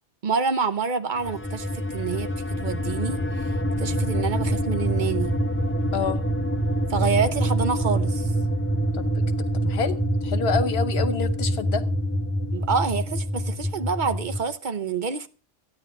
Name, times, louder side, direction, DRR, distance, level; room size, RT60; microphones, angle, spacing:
voice 1, 0.2-2.3 2.6-3.5 3.8-5.3 6.9-8.3 12.5-15.3, right 5 dB, 55° right, 0.8 m, -27 dB
sound 1, 1.2-14.4, right 1 dB, 15° left, 0.4 m, -26 dB
voice 2, 8.9-11.8, left 6 dB, 75° left, 1.2 m, -28 dB
13.0 x 9.5 x 4.7 m
omnidirectional pair, 1.1 m